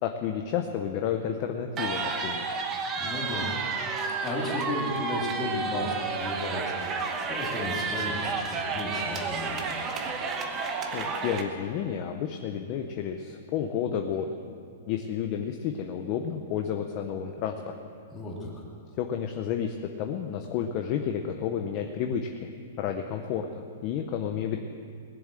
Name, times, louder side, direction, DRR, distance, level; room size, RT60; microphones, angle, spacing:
voice 1, 0.0-2.5 10.9-14.3 14.9-17.7 19.0-22.5 22.8-24.6, left 8 dB, 30° left, 4 dB, 0.7 m, -31 dB
sound 1, 1.8-11.4, right 4 dB, 20° right, 1.0 m, -31 dB
voice 2, 3.0-9.7 18.1-18.6, left 2 dB, 15° left, -3 dB, 2.5 m, -34 dB
20.0 x 7.4 x 7.6 m, 2.5 s
hypercardioid pair, 165°, 0 cm